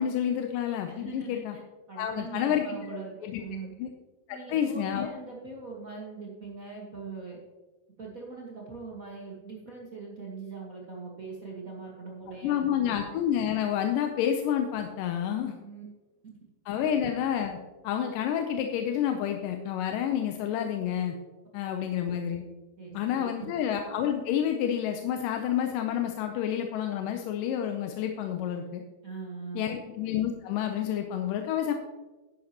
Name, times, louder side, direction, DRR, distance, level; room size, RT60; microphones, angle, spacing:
voice 1, 0.0-1.6 2.0-2.6 3.2-3.4 3.8-3.9 4.3-5.1 12.4-15.6 16.7-17.6 17.8-21.2 21.5-22.4 22.9-28.8 29.6-31.7, left 9 dB, 85° left, 4 dB, 2.3 m, -29 dB
voice 2, 0.9-1.6 1.9-3.7 4.3-7.4 8.0-12.9 15.6-15.8 16.8-17.0 21.6-21.9 22.8-23.6 29.0-29.8, right 4 dB, 70° right, -4 dB, 0.8 m, -41 dB
11.5 x 10.0 x 2.9 m, 1.2 s
omnidirectional pair, 3.9 m